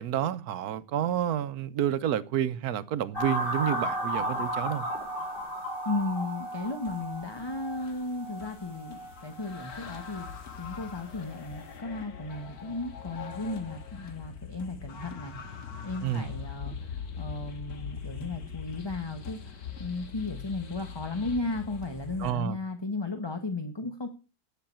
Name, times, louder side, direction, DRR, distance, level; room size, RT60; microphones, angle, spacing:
voice 1, 0.0-4.9 16.0-16.3 22.2-22.6, right 10 dB, 85° right, 1.3 m, -29 dB
sound 1, 3.1-10.4 10.7-11.0, right 1 dB, 35° left, 4.4 m, -35 dB
voice 2, 5.8-10.3 10.6-24.1, left 2 dB, 20° left, 0.9 m, -35 dB
sound 2, 6.8-22.3, left 6 dB, 90° left, 1.9 m, -42 dB
10.5 x 6.6 x 8.6 m
omnidirectional pair, 1.6 m